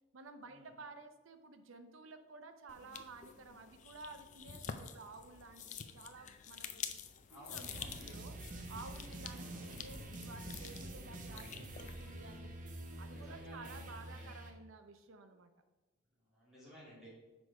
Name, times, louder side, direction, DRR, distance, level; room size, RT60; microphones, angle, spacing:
voice 1, 0.1-6.9 7.3-8.4 8.7-12.5 13.0-15.5, right 3 dB, 80° right, 8 dB, 0.6 m, -53 dB
sound 1, 2.7-12.4, left 7 dB, 40° left, 0.4 m, -49 dB
voice 2, 7.3-8.1 9.3-9.8 11.3-11.8 13.1-14.4 16.1-17.1, equal, ahead, -10 dB, 2.1 m, -57 dB
sound 2, 7.5-14.5, right 1 dB, 40° right, 0.8 m, -47 dB
6.1 x 5.0 x 4.7 m, 1.2 s
head